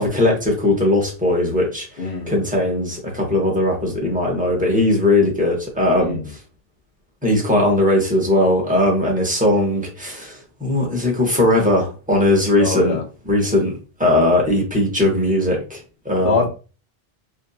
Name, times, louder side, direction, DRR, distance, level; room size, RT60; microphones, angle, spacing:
voice 1, 0.0-1.9 2.3-6.2 7.2-13.0 13.3-15.8 16.0-16.4, left 1 dB, 10° right, 0.8 m, -19 dB
voice 2, 2.0-2.4 6.0-6.3 12.6-13.0 16.2-16.5, left 4 dB, 65° left, 1.0 m, -23 dB
2.6 x 2.5 x 2.3 m
omnidirectional pair, 1.1 m